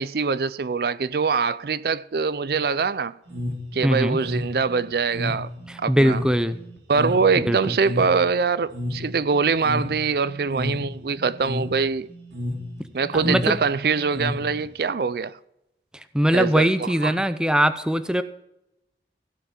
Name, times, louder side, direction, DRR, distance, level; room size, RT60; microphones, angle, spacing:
voice 1, 0.0-3.1 3.7-5.5 5.8-6.2 6.9-12.1 12.9-15.3 16.3-17.2, right 5 dB, 60° right, 0.4 m, -23 dB
sound 1, 3.3-14.9, left 1 dB, 90° right, 3.2 m, -32 dB
voice 2, 3.8-4.2 5.7-6.6 7.5-7.8 13.1-13.6 16.1-18.2, equal, 5° right, 0.6 m, -21 dB
16.5 x 5.8 x 7.3 m
head